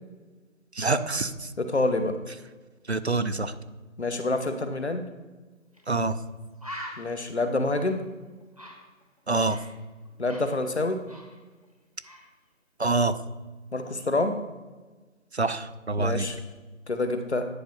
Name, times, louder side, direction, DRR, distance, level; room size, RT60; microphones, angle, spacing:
voice 1, 0.8-1.5 2.9-3.5 5.9-6.1 9.3-9.6 12.8-13.1 15.3-16.3, right 3 dB, 55° right, 12 dB, 0.6 m, -26 dB
voice 2, 1.6-2.1 4.0-5.1 7.0-8.1 10.2-11.0 13.7-14.4 16.0-16.4 16.9-17.4, left 2 dB, 55° left, 8 dB, 1.0 m, -27 dB
Bird, 5.7-5.9 6.2-6.3 6.6-9.8 10.1-11.7 12.0-12.3, equal, 30° right, 0.9 m, -44 dB
10.0 x 4.7 x 5.4 m, 1.3 s
figure-of-eight pair, 175°, 40 cm